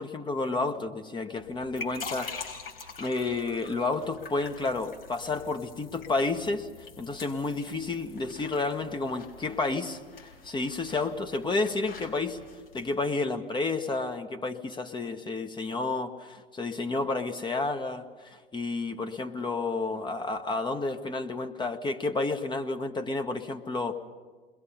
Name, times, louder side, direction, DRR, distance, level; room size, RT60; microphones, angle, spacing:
voice 1, 0.0-2.5 3.0-12.4 12.7-24.0, left 3 dB, 15° left, 7 dB, 1.3 m, -31 dB
sound 1, 1.4-12.9, left 4 dB, 75° left, 4.3 m, -45 dB
30.0 x 21.5 x 5.6 m, 1.4 s
figure-of-eight pair, 80°, 29 cm